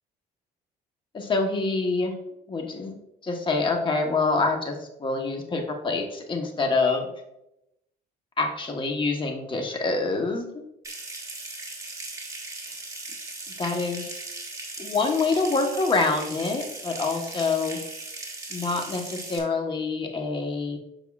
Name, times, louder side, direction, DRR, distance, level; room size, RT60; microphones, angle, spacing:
voice 1, 1.1-2.1 2.5-3.0 3.2-7.1 8.4-10.6 13.6-14.2 14.8-17.8 18.5-20.8, left 3 dB, 30° left, 3 dB, 1.2 m, -26 dB
Water tap faucet / Sink (filling or washing) / Trickle dribble, 10.8-19.4, right 2 dB, 20° right, 1.3 m, -38 dB
7.2 x 5.4 x 2.4 m, 0.84 s
cardioid pair, 110°, 17 cm